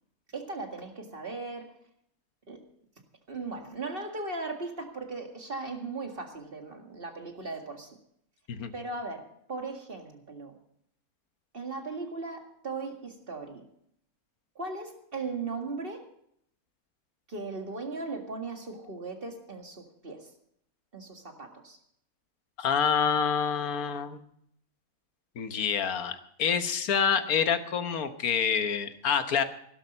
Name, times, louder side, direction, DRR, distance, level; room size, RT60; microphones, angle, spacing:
voice 1, 0.3-1.7 2.5-2.6 3.3-8.0 8.7-10.6 11.5-13.6 14.6-16.1 17.3-20.3 20.9-21.8, right 3 dB, 40° right, 3 dB, 2.1 m, -38 dB
voice 2, 22.6-24.2 25.4-29.4, left 7 dB, 90° left, 9 dB, 1.5 m, -27 dB
16.5 x 12.0 x 5.5 m, 0.70 s
omnidirectional pair, 1.5 m